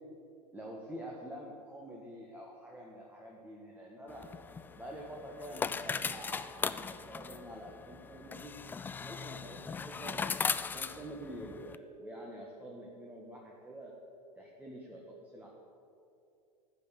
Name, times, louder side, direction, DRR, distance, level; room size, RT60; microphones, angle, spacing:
voice 1, 0.5-4.3 4.8-8.5 8.9-10.4 10.7-14.0 14.4-15.5, equal, 10° right, -3 dB, 1.5 m, -47 dB
sound 1, 4.1-11.8, left 5 dB, 10° left, 0.3 m, -38 dB
14.5 x 5.7 x 8.3 m, 2.5 s
figure-of-eight pair, 95°, 21 cm